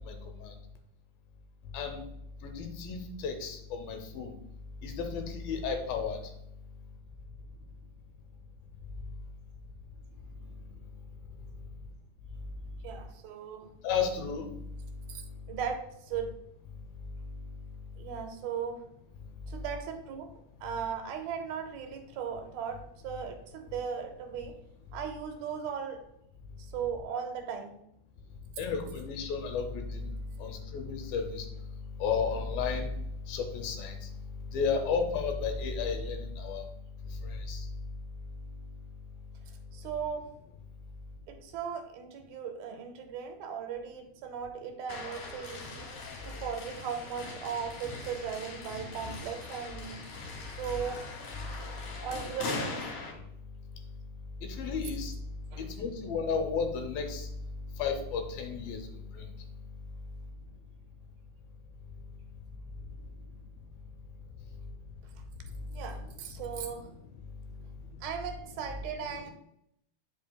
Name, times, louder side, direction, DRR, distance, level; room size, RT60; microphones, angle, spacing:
voice 1, 0.1-0.5 1.7-2.0 2.4-4.3 4.8-6.2 13.8-14.5 28.6-30.0 30.4-31.5 32.0-32.9 33.3-34.0 34.5-36.6 37.5-37.7 54.4-55.1 55.6-57.3 57.8-58.8 69.2-69.3, left 5 dB, 75° left, 4 dB, 2.4 m, -33 dB
voice 2, 12.8-13.7 15.1-16.3 18.0-18.8 19.5-20.3 20.6-24.5 24.9-26.0 26.6-27.8 39.5-40.3 41.3-50.0 50.4-51.1 52.0-52.8 55.5-55.7 65.7-66.9 67.6-67.7 68.0-69.3, right 7 dB, 80° right, 5 dB, 2.4 m, -37 dB
sound 1, 44.9-53.1, left 3 dB, 60° left, 2.3 m, -41 dB
8.5 x 5.8 x 2.2 m, 0.77 s
omnidirectional pair, 4.5 m